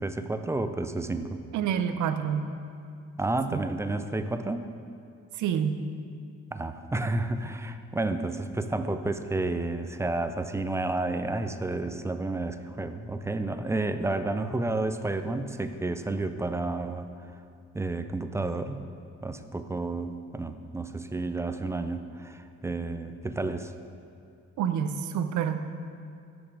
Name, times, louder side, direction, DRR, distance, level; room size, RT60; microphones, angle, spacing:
voice 1, 0.0-1.4 3.2-4.7 6.5-17.1 17.7-18.9 19.2-23.7, right 2 dB, 10° right, 9 dB, 0.3 m, -31 dB
voice 2, 1.5-2.4 3.5-3.6 5.4-5.8 24.6-25.6, right 8 dB, 75° right, 9 dB, 0.6 m, -28 dB
6.8 x 5.3 x 6.1 m, 2.5 s
cardioid pair, 90°, 30 cm